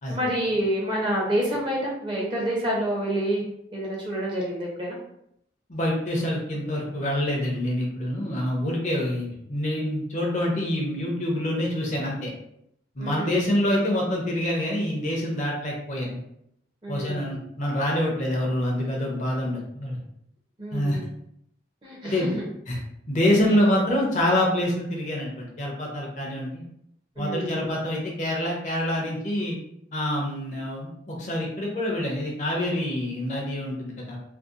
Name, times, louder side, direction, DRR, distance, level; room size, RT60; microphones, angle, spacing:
voice 1, 0.1-3.4 3.7-5.0 13.0-13.4 16.8-17.4 20.6-21.1 21.8-22.5 27.2-27.6, right 1 dB, 25° right, -4 dB, 0.6 m, -28 dB
voice 2, 5.7-12.3 13.0-16.2 16.9-20.0 20.7-21.0 22.0-22.4 22.7-22.8 23.1-26.6 27.2-29.6 29.9-34.2, left 1 dB, 40° left, -2 dB, 0.5 m, -26 dB
2.6 x 2.1 x 2.4 m, 0.75 s
head